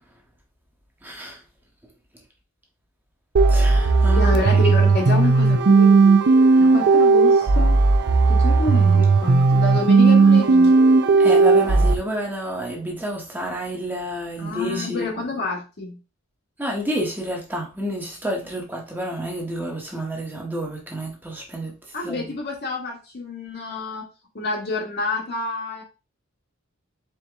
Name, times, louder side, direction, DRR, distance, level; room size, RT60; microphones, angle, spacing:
voice 1, 1.0-1.4 3.5-4.4 11.2-15.1 16.6-21.7 22.0-22.3, right 1 dB, 10° right, 0.9 m, -29 dB
sound 1, 3.4-11.9, right 3 dB, 55° right, 0.5 m, -15 dB
voice 2, 4.1-6.0 6.6-7.8 8.3-10.7 14.4-16.0 21.9-24.1 24.3-25.8, left 2 dB, 50° left, 1.3 m, -28 dB
4.6 x 2.8 x 3.4 m
head